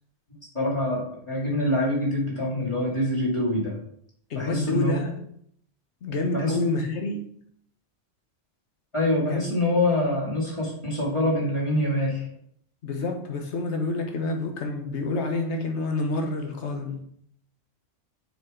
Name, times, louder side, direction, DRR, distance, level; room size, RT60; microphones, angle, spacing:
voice 1, 0.5-3.7 4.3-5.0 6.3-6.6 8.9-12.3, left 1 dB, 25° left, -4 dB, 2.6 m, -25 dB
voice 2, 4.3-5.2 6.0-7.3 9.3-9.4 12.8-17.0, left 2 dB, 75° left, 3 dB, 1.4 m, -28 dB
7.1 x 5.7 x 3.8 m, 0.67 s
omnidirectional pair, 1.2 m